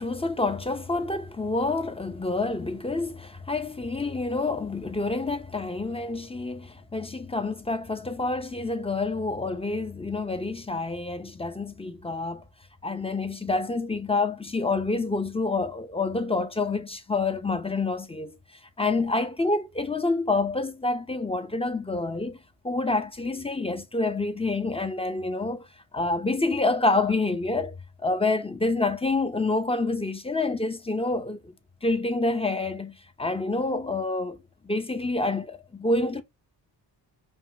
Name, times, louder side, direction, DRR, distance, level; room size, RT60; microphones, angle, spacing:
voice 1, 0.0-12.4 12.8-18.3 18.8-22.4 22.6-25.7 25.9-27.8 28.0-31.5 31.8-34.4 34.6-36.2, left 3 dB, 15° left, 0.7 m, -27 dB
5.4 x 2.3 x 2.9 m
cardioid pair, 75°, 44 cm